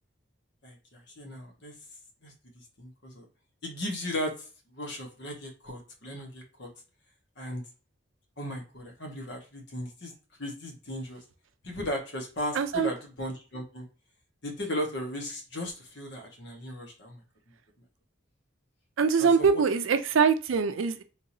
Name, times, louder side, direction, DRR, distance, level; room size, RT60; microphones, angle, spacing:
voice 1, 0.6-1.7 2.2-2.3 2.8-3.2 3.6-4.3 4.7-6.7 7.4-7.6 8.4-10.1 10.4-11.2 11.6-13.9 14.4-17.2 19.2-19.6, left 1 dB, 60° left, 2 dB, 1.1 m, -36 dB
voice 2, 12.5-12.9 19.0-21.0, right 5 dB, 80° right, 10 dB, 0.4 m, -23 dB
3.6 x 2.9 x 2.6 m, 0.34 s
head